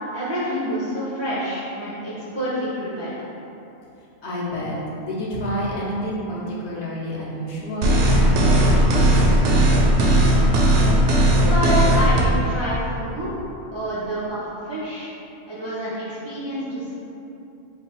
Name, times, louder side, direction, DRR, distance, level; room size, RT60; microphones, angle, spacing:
voice 1, 0.1-3.1 11.4-13.3 13.7-15.1 15.5-16.9, equal, 35° right, -9 dB, 0.4 m, -27 dB
voice 2, 4.2-10.3, equal, 60° left, -6 dB, 1.0 m, -30 dB
sound 1, 7.8-12.2, right 1 dB, 70° right, 0.8 m, -16 dB
3.7 x 2.3 x 4.3 m, 2.9 s
omnidirectional pair, 1.3 m